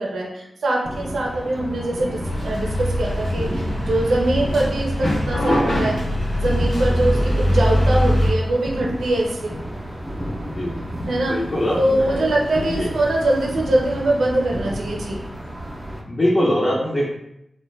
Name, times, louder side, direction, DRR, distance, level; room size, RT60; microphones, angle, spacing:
voice 1, 0.0-6.0 6.4-9.6 11.1-11.4 11.8-15.2, right 1 dB, 90° right, -2 dB, 0.5 m, -22 dB
sound 1, 0.8-16.0, equal, 10° right, 0.5 m, -32 dB
sound 2, 2.2-8.3, equal, 80° left, 0.8 m, -21 dB
sound 3, 3.5-7.4, right 1 dB, 55° left, 1.0 m, -41 dB
voice 2, 10.4-10.7 11.3-12.3 12.7-12.9 16.1-17.1, left 1 dB, 35° left, -8 dB, 0.6 m, -22 dB
2.2 x 2.1 x 3.1 m, 0.81 s
cardioid pair, 65°, 0 cm